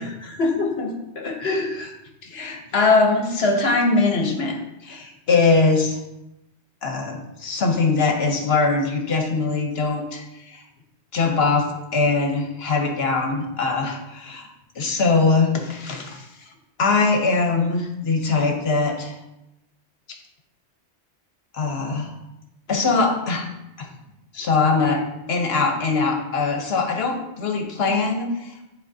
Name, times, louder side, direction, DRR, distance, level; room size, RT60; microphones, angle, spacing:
voice 1, 0.0-1.9 2.2-6.0 6.8-10.6 11.1-14.5 14.7-16.3 16.8-19.2 21.5-22.1 22.7-23.5 23.8-23.9 24.3-28.5, left 3 dB, 65° left, 3 dB, 1.1 m, -22 dB
9.9 x 4.0 x 2.7 m, 0.90 s
omnidirectional pair, 1.1 m